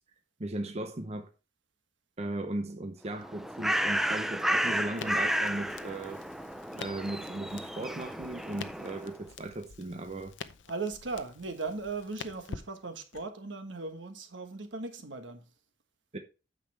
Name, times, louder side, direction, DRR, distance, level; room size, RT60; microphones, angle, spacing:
voice 1, 0.4-1.3 2.2-6.2 6.7-10.3 16.1-16.2, right 1 dB, 35° right, 0.7 m, -37 dB
Bird, 3.1-9.2, equal, ahead, 0.5 m, -32 dB
Crackle, 5.0-13.3, left 5 dB, 75° left, 0.7 m, -47 dB
voice 2, 10.7-15.4, right 3 dB, 75° right, 1.4 m, -38 dB
9.2 x 6.8 x 3.3 m
head